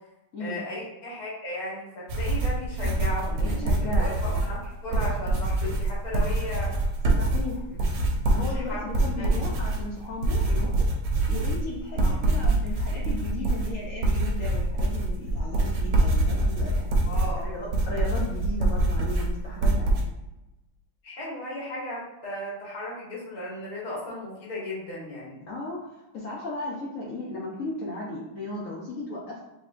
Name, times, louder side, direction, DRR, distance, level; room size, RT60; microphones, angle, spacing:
voice 1, 0.4-6.7 7.7-7.8 8.3-9.4 12.0-12.1 17.0-17.6 21.0-25.5, left 1 dB, 50° left, -6 dB, 2.0 m, -36 dB
sound 1, 2.1-20.0, right 2 dB, 65° right, 1.2 m, -25 dB
voice 2, 3.4-4.4 7.2-7.6 8.3-10.8 11.3-16.9 17.4-20.0 25.5-25.8 26.1-29.4, left 2 dB, 65° left, -4 dB, 0.8 m, -35 dB
5.0 x 3.1 x 2.5 m, 0.96 s
omnidirectional pair, 2.3 m